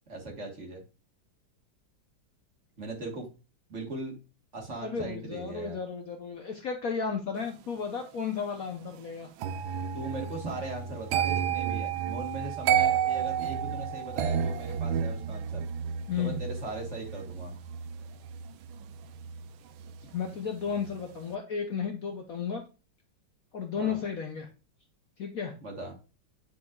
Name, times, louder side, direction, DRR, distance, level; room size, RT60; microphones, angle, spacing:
voice 1, 0.1-0.8 2.8-3.3 3.7-4.2 4.5-5.8 9.9-15.7 16.2-17.5 23.8-24.0 25.6-25.9, right 2 dB, 40° right, 0 dB, 1.7 m, -39 dB
voice 2, 4.8-9.3 16.1-16.4 20.1-22.6 23.5-24.5 25.2-25.5, left 6 dB, 60° left, 4 dB, 1.0 m, -33 dB
sound 1, 9.4-20.4 20.7-21.0, right 8 dB, 90° right, 1.4 m, -31 dB
9.4 x 4.8 x 2.3 m, 0.32 s
omnidirectional pair, 2.1 m